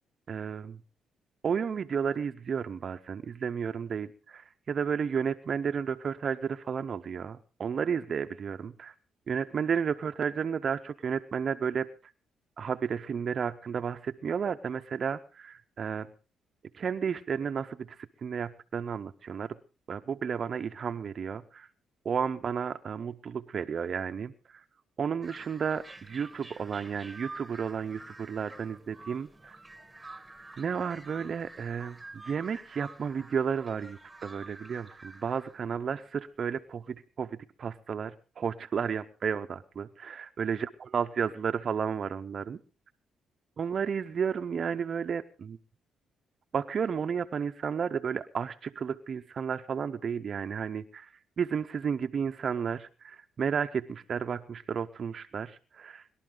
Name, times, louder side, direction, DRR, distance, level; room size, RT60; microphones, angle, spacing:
voice 1, 0.3-0.8 1.4-8.9 9.3-11.9 12.6-16.1 16.7-17.9 18.2-19.6 19.9-21.7 22.0-24.6 25.0-29.6 30.6-42.6 43.6-45.6 46.5-51.1 51.4-56.0, right 7 dB, 50° right, 9 dB, 0.7 m, -32 dB
sound 1, 25.2-36.0, right 2 dB, 15° right, 1.4 m, -49 dB
23.0 x 12.0 x 3.8 m, 0.34 s
cardioid pair, 90°, 0 cm